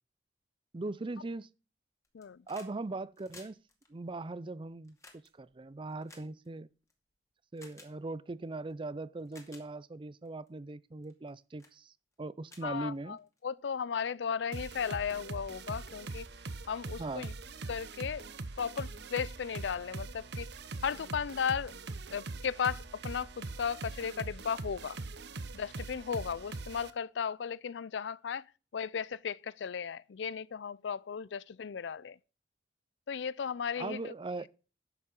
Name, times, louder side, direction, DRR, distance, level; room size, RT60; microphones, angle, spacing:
voice 1, 0.7-1.5 2.5-3.6 3.9-6.7 7.5-11.9 12.2-13.2 17.0-17.3 33.8-34.5, right 2 dB, 30° right, 0.5 m, -40 dB
sound 1, 2.0-2.8 3.0-6.9 7.6-7.9 8.7-8.8 9.2-9.7 10.3-10.5 11.0-11.3 11.6-11.8 12.1-12.2 12.5-13.4 14.6-14.7, left 3 dB, 15° left, 2.3 m, -56 dB
voice 2, 2.1-2.4 12.6-16.3 16.7-17.3 17.7-18.3 18.6-20.5 20.8-21.8 22.1-25.0 25.5-28.5 28.7-32.2 33.1-34.1, left 7 dB, 75° left, 0.4 m, -35 dB
sound 2, 14.5-26.9, right 3 dB, 65° right, 1.0 m, -42 dB
11.0 x 7.3 x 5.3 m
head